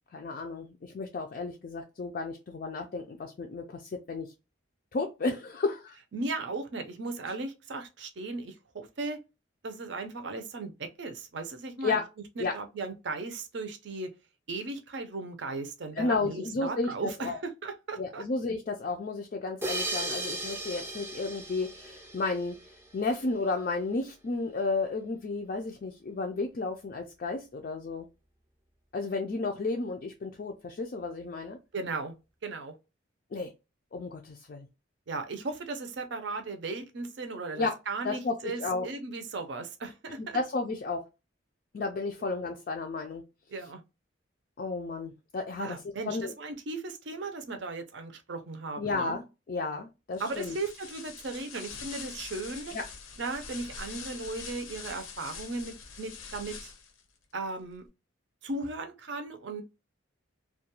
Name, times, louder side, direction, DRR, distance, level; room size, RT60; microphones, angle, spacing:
voice 1, 0.1-4.3 4.9-6.0 11.8-12.1 12.4-12.5 16.0-17.4 18.0-22.6 22.9-28.1 28.9-31.6 33.3-33.5 33.9-34.7 37.5-37.7 38.0-38.9 40.2-41.0 41.7-43.2 44.6-45.8 46.1-46.3 48.8-50.6 52.7-52.8, left 3 dB, 45° left, 0.3 m, -32 dB
voice 2, 6.1-9.2 9.6-12.0 12.4-14.1 14.5-18.2 31.7-32.1 32.4-32.7 35.1-40.4 43.5-43.8 45.6-49.2 50.2-52.7 53.2-56.7 57.3-57.9 58.4-59.6, right 3 dB, 60° right, 0.5 m, -37 dB
sound 1, 19.6-22.9, right 2 dB, 10° right, 0.5 m, -36 dB
sound 2, 50.1-57.0, left 5 dB, 85° left, 0.6 m, -44 dB
2.3 x 2.2 x 2.8 m
head